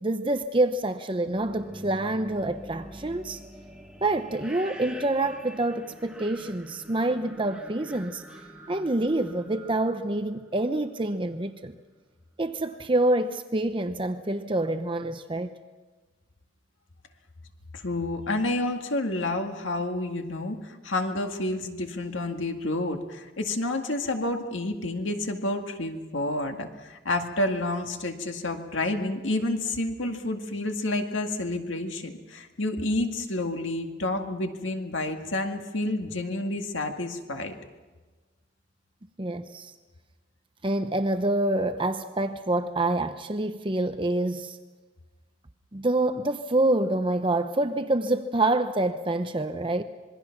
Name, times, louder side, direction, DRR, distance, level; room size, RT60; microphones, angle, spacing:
voice 1, 0.0-3.4 4.0-8.2 8.7-11.8 12.4-15.6 39.2-39.7 40.6-44.6 45.7-49.8, right 2 dB, 25° right, 0.8 m, -27 dB
sound 1, 1.1-10.9, right 1 dB, 5° right, 1.6 m, -45 dB
voice 2, 17.7-37.6, left 2 dB, 85° left, 2.0 m, -29 dB
26.5 x 22.0 x 6.0 m
head